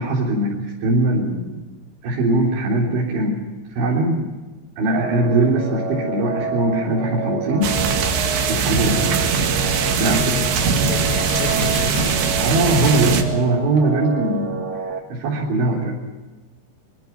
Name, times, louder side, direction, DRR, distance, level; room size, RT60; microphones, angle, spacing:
voice 1, 0.0-1.6 2.0-3.4 3.7-4.3 4.8-8.0 8.5-9.4 10.0-10.5 12.4-16.0, right 2 dB, 85° right, -4 dB, 6.0 m, -21 dB
sound 1, 4.9-15.0, right 3 dB, 35° right, 1.7 m, -29 dB
sound 2, 7.6-13.2, right 6 dB, 70° right, 4.0 m, -21 dB
voice 2, 9.8-12.2, left 10 dB, 65° left, 11 dB, 2.3 m, -33 dB
Crushing, 11.3-13.5 13.8-13.9, left 4 dB, 45° left, 4.0 m, -35 dB
24.0 x 23.0 x 6.0 m, 1.2 s
omnidirectional pair, 5.1 m